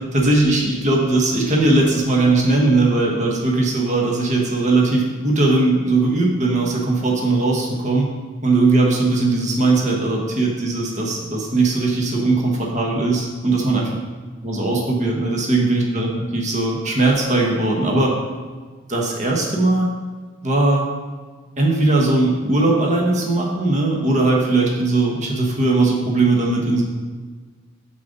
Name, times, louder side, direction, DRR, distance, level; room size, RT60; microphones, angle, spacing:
voice 1, 0.1-8.1 8.4-13.9 14.4-18.2 18.9-19.9 20.4-20.9 21.6-26.8, right 2 dB, 35° right, -1 dB, 1.1 m, -19 dB
7.3 x 4.0 x 5.1 m, 1.4 s
head